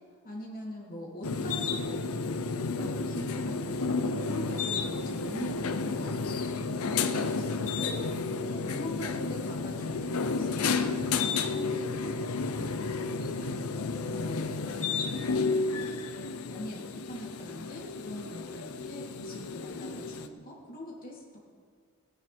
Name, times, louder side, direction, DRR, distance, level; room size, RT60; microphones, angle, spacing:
voice 1, 0.2-12.7 13.2-16.0 16.4-21.4, left 1 dB, 40° left, -4 dB, 3.3 m, -43 dB
sound 1, 1.2-20.3, left 4 dB, 75° left, 0.7 m, -32 dB
18.0 x 10.5 x 4.4 m, 2.1 s
head